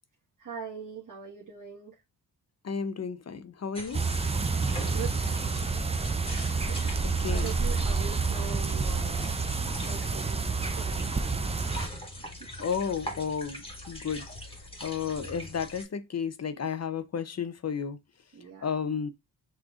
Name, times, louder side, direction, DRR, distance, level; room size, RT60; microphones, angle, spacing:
voice 1, 0.4-1.9 4.6-5.4 6.5-7.0 7.3-9.4 9.8-10.4 10.7-12.1 18.3-18.7, right 7 dB, 55° right, 1.4 m, -42 dB
voice 2, 2.6-4.0 7.2-7.5 12.6-14.2 14.8-18.0 18.6-19.1, left 6 dB, 45° left, 0.7 m, -32 dB
sound 1, 3.7-15.8, left 1 dB, 15° left, 1.7 m, -42 dB
sound 2, 3.9-11.9, right 4 dB, 15° right, 0.5 m, -29 dB
6.1 x 3.2 x 2.4 m
cardioid pair, 70°, 38 cm